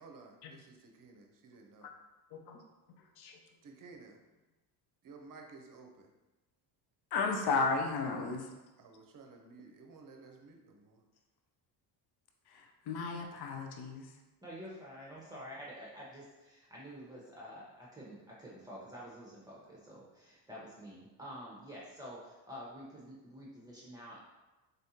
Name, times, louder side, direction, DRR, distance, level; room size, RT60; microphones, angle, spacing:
voice 1, 0.0-1.9 3.6-4.2 5.0-6.1 8.0-8.4 8.8-11.1, right 4 dB, 40° right, 3 dB, 0.8 m, -54 dB
voice 2, 2.3-2.6 3.2-3.4 7.1-8.5 12.5-14.1, left 4 dB, 50° left, 3 dB, 0.8 m, -34 dB
voice 3, 14.4-24.2, equal, 10° right, -6 dB, 1.0 m, -48 dB
3.9 x 3.4 x 2.8 m, 1.1 s
supercardioid pair, 75°, 50 cm